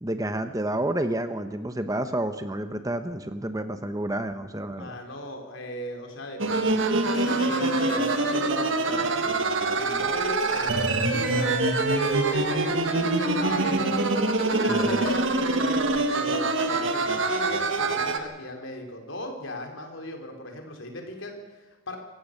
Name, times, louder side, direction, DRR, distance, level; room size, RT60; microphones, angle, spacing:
voice 1, 0.0-5.0 14.7-15.0, right 1 dB, 15° right, 9 dB, 1.0 m, -30 dB
voice 2, 4.8-11.6 12.2-13.9 14.4-22.0, left 1 dB, 70° left, 2 dB, 4.1 m, -37 dB
sound 1, 6.4-18.2, right 3 dB, 65° right, 1.7 m, -25 dB
sound 2, 7.1-8.8 9.1-9.2 10.4-13.2 14.4-15.1, left 1 dB, 40° left, 3.5 m, -37 dB
26.0 x 16.0 x 6.7 m, 1.2 s
head